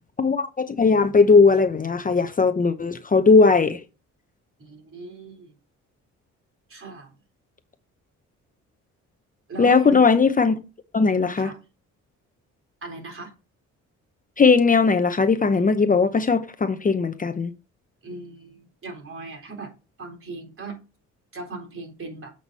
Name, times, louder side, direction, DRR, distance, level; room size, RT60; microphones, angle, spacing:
voice 1, 0.2-3.8 9.6-10.6 10.9-11.5 14.4-17.5, left 4 dB, 25° left, 0.8 m, -18 dB
voice 2, 4.6-5.5 6.7-7.1 9.5-10.0 11.4-11.6 12.8-13.3 18.0-19.7 20.0-20.8 21.3-22.3, right 3 dB, 45° right, 3.9 m, -38 dB
7.9 x 6.0 x 4.1 m
cardioid pair, 90°, 30 cm